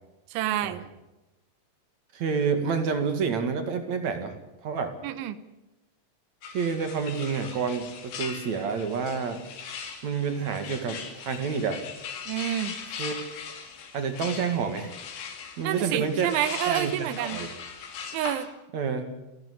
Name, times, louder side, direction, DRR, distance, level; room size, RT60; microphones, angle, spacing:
voice 1, 0.3-0.8 5.0-5.4 12.3-12.7 15.6-17.4 18.1-18.5, right 12 dB, 85° right, 14 dB, 3.4 m, -28 dB
voice 2, 2.1-4.3 4.6-4.9 6.5-9.4 10.0-11.8 13.0-13.2 13.9-14.9 15.6-16.3 16.7-17.5 18.7-19.1, right 5 dB, 50° right, 7 dB, 2.6 m, -28 dB
sound 1, 6.4-18.5, left 6 dB, 90° left, 5.2 m, -40 dB
29.5 x 12.0 x 9.9 m, 1.0 s
omnidirectional pair, 5.4 m